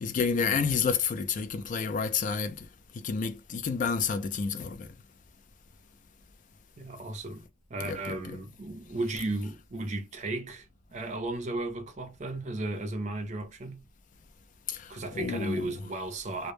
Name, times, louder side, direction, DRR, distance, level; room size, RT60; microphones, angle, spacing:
voice 1, 0.0-2.7 3.0-4.9 7.8-8.4 14.7-15.7, left 5 dB, 40° left, 0.3 m, -30 dB
voice 2, 6.8-13.8 14.9-16.5, right 2 dB, 40° right, 0.5 m, -35 dB
2.1 x 2.0 x 3.1 m
head